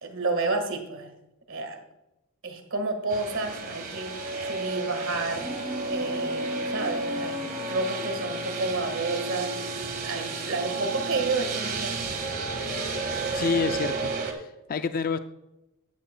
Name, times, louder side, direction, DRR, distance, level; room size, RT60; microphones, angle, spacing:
voice 1, 0.0-1.1 1.5-1.8 2.4-4.1 4.4-5.4 5.9-9.6 10.0-12.2, right 3 dB, 65° right, 6 dB, 1.6 m, -30 dB
sound 1, 3.1-14.3, right 3 dB, 45° right, 1.7 m, -32 dB
sound 2, 5.3-8.2, right 1 dB, 5° left, 2.8 m, -37 dB
voice 2, 13.3-15.2, left 5 dB, 40° left, 10 dB, 0.4 m, -28 dB
13.5 x 10.5 x 2.2 m, 0.93 s
head